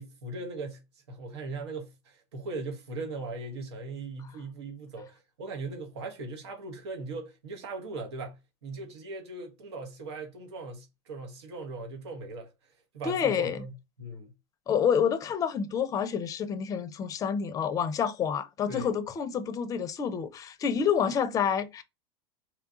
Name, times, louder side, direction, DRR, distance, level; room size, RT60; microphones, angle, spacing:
voice 1, 0.0-12.5 12.9-13.7 14.0-14.3 18.7-19.0, right 3 dB, 85° right, 1.0 m, -39 dB
voice 2, 13.0-13.6 14.7-21.8, left 7 dB, 25° left, 0.5 m, -28 dB
3.2 x 2.3 x 3.8 m
supercardioid pair, 120°, 14 cm